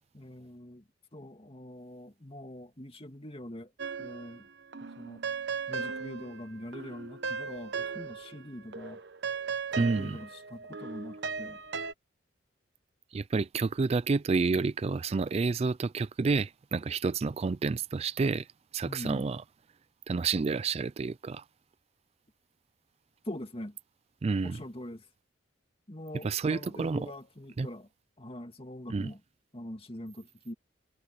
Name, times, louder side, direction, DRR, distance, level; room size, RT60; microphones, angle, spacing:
voice 1, 0.1-3.7 4.0-4.5 4.8-5.2 5.7-9.0 9.7-11.6 18.8-19.2 23.2-23.8 24.4-25.1 25.9-27.9 28.2-29.2 29.5-30.5, left 1 dB, 30° left, 2.3 m, -43 dB
sound 1, 3.8-4.5 4.7-8.5 8.7-11.9, right 5 dB, 60° right, 0.9 m, -37 dB
voice 2, 9.8-10.2 13.1-18.5 18.7-19.4 20.1-21.4 24.2-24.6 26.2-27.1 27.6-27.7 28.9-29.1, right 4 dB, 30° right, 0.3 m, -29 dB
head